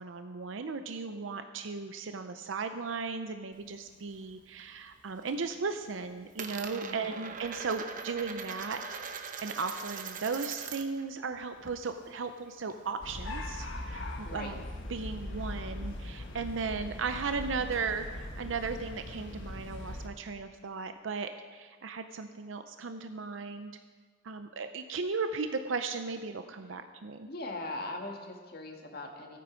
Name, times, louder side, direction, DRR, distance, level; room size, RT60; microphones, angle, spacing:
voice 1, 0.0-8.8 9.4-14.6 14.9-23.7 24.2-27.3, right 4 dB, 85° right, 8 dB, 0.6 m, -36 dB
Coin (dropping), 3.5-4.7 5.0-5.5 5.7-11.0 11.3-13.0, right 6 dB, 45° right, 0.9 m, -42 dB
voice 2, 6.7-7.1 14.2-14.6 27.2-29.4, left 2 dB, 55° left, 2 dB, 1.7 m, -40 dB
sound 1, 13.0-20.1, left 1 dB, 80° left, 1.3 m, -40 dB
15.5 x 9.3 x 5.1 m, 1.5 s
head